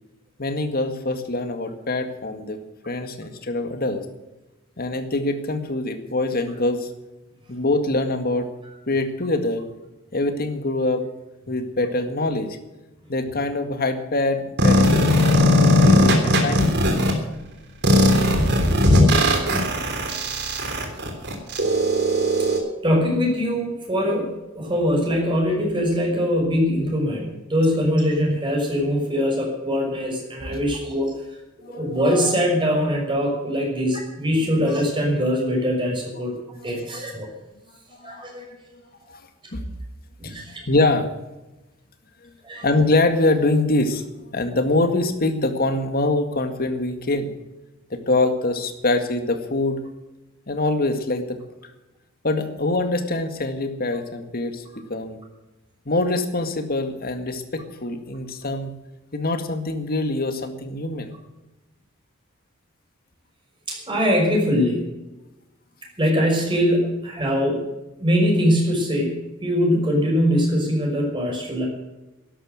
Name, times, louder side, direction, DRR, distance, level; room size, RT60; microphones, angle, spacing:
voice 1, 0.4-4.1 4.8-6.9 7.5-8.5 8.9-9.7 10.1-11.1 11.5-12.6 13.1-16.7 30.5-30.6 31.6-31.8 34.3-34.5 36.2-36.3 36.6-36.8 38.0-38.2 39.1-39.2 39.5-39.6 40.2-40.4 40.7-41.1 42.2-42.3 42.6-44.0 44.3-47.3 47.9-49.8 50.5-51.4 52.2-55.2 55.9-58.7 59.1-61.1, left 2 dB, 45° left, 7 dB, 2.0 m, -24 dB
sound 1, 14.6-17.1 17.8-22.6, left 1 dB, 55° right, 3.4 m, -18 dB
voice 2, 22.8-31.1 31.7-36.3 36.6-37.3 38.0-38.4 40.2-40.6 42.4-42.6 63.7-64.9 66.0-67.6 68.0-71.7, equal, 25° right, 0 dB, 6.0 m, -22 dB
13.0 x 11.5 x 8.0 m, 1.0 s
head